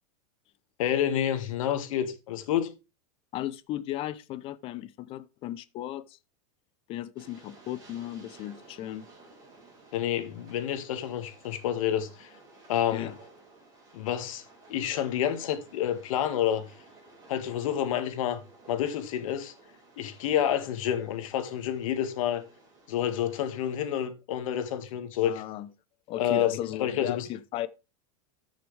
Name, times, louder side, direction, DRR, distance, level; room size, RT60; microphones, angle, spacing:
voice 1, 0.8-2.7 9.9-12.3 12.7-13.1 13.9-14.4 14.7-16.7 17.3-18.4 18.7-19.5 20.0-22.4 22.9-25.4 26.2-26.5 26.8-27.3, left 10 dB, 70° left, 1.8 m, -29 dB
voice 2, 3.3-6.2 6.9-9.1 12.9-13.1 25.2-25.7 26.1-27.7, left 13 dB, 30° left, 0.6 m, -35 dB
Train, 7.2-24.1, right 2 dB, 20° right, 5.1 m, -55 dB
13.5 x 6.4 x 3.3 m
supercardioid pair, 160°, 18 cm